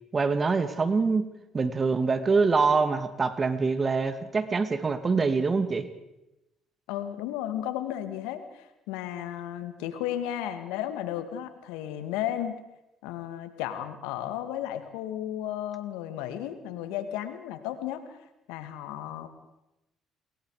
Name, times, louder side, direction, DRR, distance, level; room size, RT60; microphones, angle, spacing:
voice 1, 0.1-1.3 1.5-5.9, right 4 dB, 35° right, 11 dB, 2.2 m, -25 dB
voice 2, 6.9-12.6 13.0-18.2 18.5-19.3, left 11 dB, 80° left, 10 dB, 2.2 m, -34 dB
28.5 x 22.0 x 5.0 m, 0.92 s
supercardioid pair, 70°, 0 cm